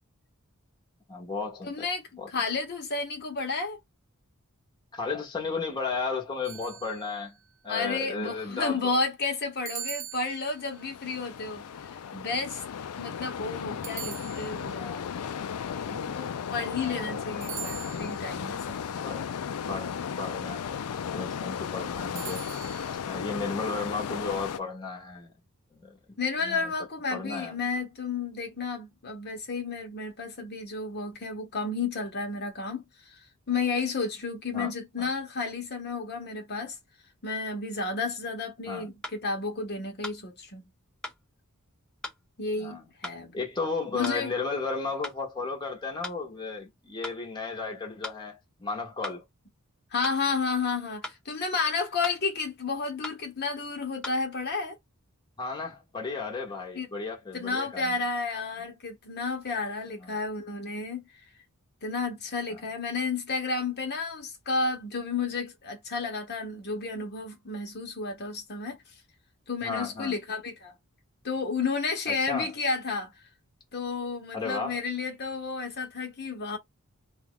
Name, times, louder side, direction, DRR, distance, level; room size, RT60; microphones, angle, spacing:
voice 1, 1.1-1.9 2.2-2.3 4.9-7.3 7.6-8.9 16.7-17.2 19.0-19.2 19.7-22.4 23.0-25.3 25.7-26.0 26.4-26.7 27.1-27.6 34.5-34.7 35.0-35.1 38.7-38.9 42.6-42.9 43.3-49.2 55.4-58.0 60.0-60.1 62.5-62.6 69.6-70.2 72.1-72.5 74.3-74.8, left 4 dB, 20° left, 1.0 m, -34 dB
voice 2, 1.6-2.0 2.3-3.8 7.7-12.6 13.0-15.1 15.9-18.6 26.2-33.2 33.5-36.8 37.2-40.6 42.4-43.4 43.9-44.3 49.9-54.8 56.7-56.9 57.3-61.1 61.8-68.8 69.5-70.7 71.2-73.1 73.7-76.6, left 4 dB, 50° left, 1.0 m, -32 dB
sound 1, 6.4-7.4 9.7-10.9 13.8-14.9 17.4-18.4 22.2-22.9, right 11 dB, 60° right, 0.7 m, -41 dB
sound 2, 10.6-24.6, left 7 dB, 85° left, 0.4 m, -35 dB
sound 3, 39.0-39.2 40.0-40.2 41.0-41.2 42.0-42.2 43.0-43.2 44.0-44.2 45.0-45.2 46.0-46.2 47.0-47.2 48.0-48.2 49.0-49.2 50.0-50.2 51.0-51.2 52.0-52.2 53.0-53.2 54.0-54.1, left 2 dB, 5° left, 0.6 m, -38 dB
2.9 x 2.4 x 3.6 m
head